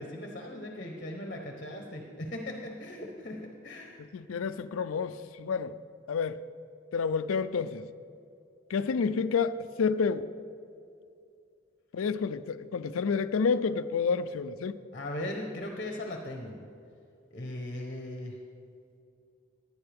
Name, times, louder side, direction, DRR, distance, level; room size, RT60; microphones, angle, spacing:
voice 1, 0.0-4.0 14.9-16.6 17.3-18.4, left 1 dB, 40° left, 3 dB, 0.9 m, -38 dB
voice 2, 4.0-5.7 6.1-6.4 6.9-7.9 8.7-10.3 11.9-14.8, left 5 dB, 85° left, 13 dB, 0.4 m, -29 dB
15.0 x 9.7 x 3.5 m, 2.5 s
head